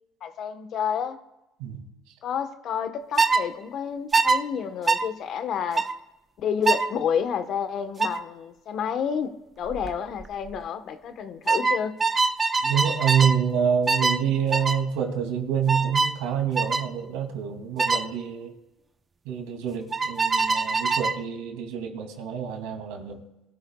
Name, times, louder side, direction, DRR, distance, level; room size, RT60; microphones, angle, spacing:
voice 1, 0.2-1.2 2.2-5.8 6.4-9.3 9.6-11.9, left 7 dB, 55° left, 1.3 m, -29 dB
sound 1, 3.2-3.4 4.1-4.4 4.9-5.1 5.8-5.9 6.7-6.9 8.0-8.2 9.7-9.9 10.2-10.6 11.5-13.4 13.9-14.2 14.5-14.8 15.7-16.2 16.6-16.9 17.8-18.1 19.9-21.2, right 4 dB, 25° right, 0.8 m, -23 dB
voice 2, 12.6-18.5 19.2-23.3, right 8 dB, 85° right, 2.8 m, -27 dB
23.5 x 13.0 x 2.4 m
supercardioid pair, 90°, 0 cm